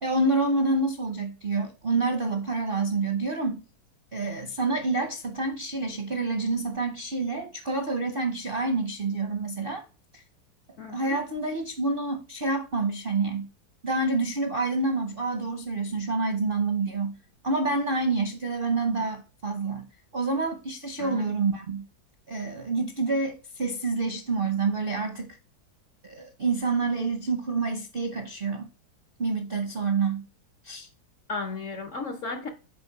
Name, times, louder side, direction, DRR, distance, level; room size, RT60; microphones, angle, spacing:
voice 1, 0.0-3.6 4.1-9.8 10.1-10.2 10.9-13.5 13.8-17.2 17.4-19.8 20.1-21.8 22.3-25.3 26.0-28.7 29.2-30.2 30.6-30.9, right 3 dB, 55° right, 0.6 m, -28 dB
voice 2, 10.8-11.2 21.0-21.3 31.3-32.5, left 3 dB, 60° left, 0.8 m, -34 dB
6.9 x 4.5 x 4.5 m
omnidirectional pair, 2.1 m